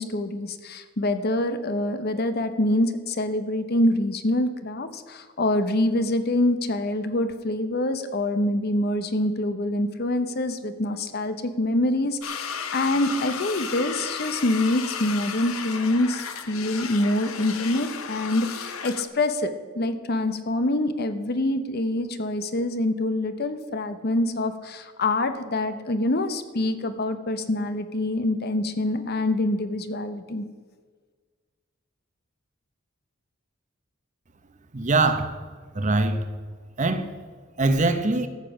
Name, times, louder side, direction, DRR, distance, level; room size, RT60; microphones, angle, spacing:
voice 1, 0.0-30.4, left 1 dB, 50° left, 10 dB, 0.8 m, -25 dB
sound 1, 12.2-19.1, left 6 dB, 80° left, 0.9 m, -34 dB
voice 2, 34.7-35.4 35.7-36.2 36.8-37.1 37.6-38.3, right 2 dB, 35° right, 9 dB, 0.8 m, -22 dB
13.5 x 7.2 x 6.3 m, 1.6 s
head